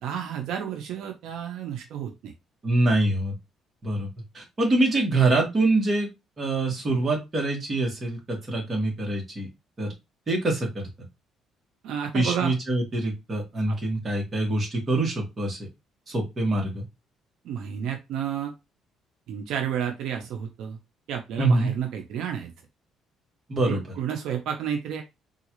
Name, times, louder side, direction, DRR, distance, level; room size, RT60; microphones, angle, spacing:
voice 1, 0.0-2.3 11.8-12.5 13.7-13.8 17.4-18.5 19.3-20.8 21.1-22.5 23.7-25.0, right 8 dB, 75° right, 4 dB, 0.7 m, -31 dB
voice 2, 2.6-3.3 3.8-6.1 6.4-9.5 9.8-9.9 10.3-10.9 12.1-15.7 16.1-16.8 21.4-21.7 23.5-23.8, right 2 dB, 30° right, -1 dB, 1.6 m, -25 dB
3.7 x 2.4 x 3.1 m, 0.23 s
cardioid pair, 135°, 0 cm